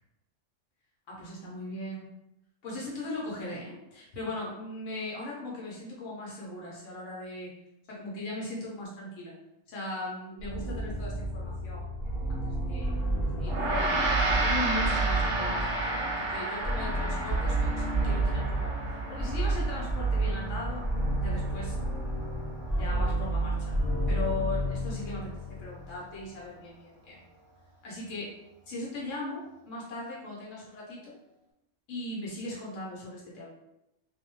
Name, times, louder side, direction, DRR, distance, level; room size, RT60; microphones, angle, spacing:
voice 1, 1.1-2.1 2.6-7.5 7.9-9.3 9.7-14.0 14.3-20.8 21.2-21.7 22.8-23.8 24.1-27.2 27.8-28.3 28.7-29.4 29.7-31.1 31.9-33.5, left 2 dB, 75° left, -5 dB, 1.1 m, -38 dB
sound 1, 10.4-26.1, right 2 dB, 20° left, 0.9 m, -30 dB
Gong, 13.5-23.0, right 2 dB, 65° right, 0.9 m, -32 dB
2.6 x 2.1 x 2.9 m, 0.89 s
omnidirectional pair, 1.3 m